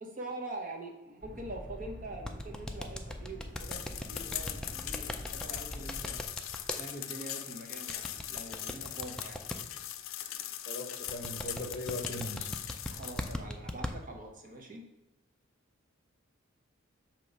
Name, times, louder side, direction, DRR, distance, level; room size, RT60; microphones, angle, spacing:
voice 1, 0.0-6.2 6.7-9.5 12.9-14.8, right 2 dB, 40° right, 2 dB, 1.0 m, -44 dB
sound 1, 1.2-6.2, left 1 dB, 80° right, 1.4 m, -45 dB
sound 2, 2.2-6.8 7.9-9.6 11.1-13.9, left 1 dB, 5° left, 0.3 m, -38 dB
sound 3, 3.6-13.3, left 12 dB, 80° left, 0.5 m, -40 dB
voice 2, 10.7-12.5, left 1 dB, 35° left, -1 dB, 0.7 m, -39 dB
6.5 x 3.0 x 5.2 m, 1.0 s
head